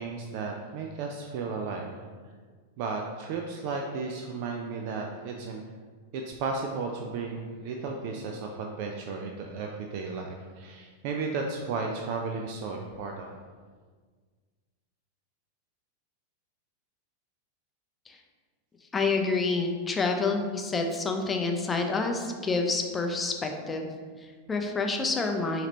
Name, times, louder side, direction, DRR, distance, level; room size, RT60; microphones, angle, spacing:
voice 1, 0.0-1.9 2.8-5.6 6.1-13.4, right 4 dB, 45° right, 2 dB, 0.4 m, -34 dB
voice 2, 18.9-23.9 24.2-25.7, left 3 dB, 15° left, 3 dB, 0.5 m, -28 dB
5.7 x 3.0 x 2.8 m, 1.5 s
figure-of-eight pair, 90°, 0 cm